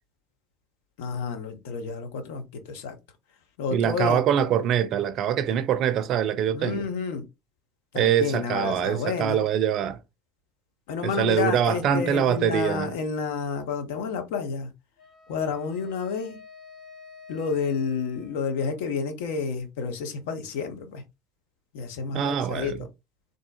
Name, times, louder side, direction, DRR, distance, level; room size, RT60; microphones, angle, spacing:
voice 1, 1.0-3.0 3.6-4.2 6.5-7.2 7.9-9.4 10.9-14.7 15.3-16.4 17.3-21.0 21.7-22.7, left 5 dB, 65° left, 0.7 m, -30 dB
voice 2, 3.7-6.9 7.9-10.0 11.0-12.9 22.1-22.7, right 9 dB, 50° right, 0.4 m, -24 dB
Wind instrument woodwind instrument, 15.0-19.1, left 5 dB, 35° left, 1.1 m, -50 dB
3.8 x 2.6 x 2.3 m
figure-of-eight pair, 65°, 0 cm